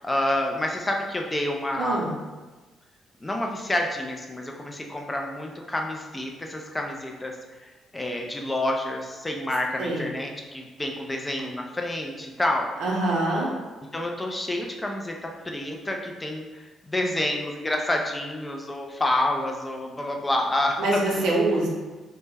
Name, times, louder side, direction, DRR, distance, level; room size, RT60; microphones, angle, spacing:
voice 1, 0.0-2.0 3.2-7.3 7.9-12.7 13.9-21.4, left 1 dB, 20° left, 1 dB, 0.4 m, -28 dB
voice 2, 1.8-2.1 9.8-10.1 12.8-13.5 20.8-21.7, right 2 dB, 80° right, -3 dB, 0.6 m, -24 dB
2.1 x 2.1 x 3.3 m, 1.3 s
cardioid pair, 90°, 0 cm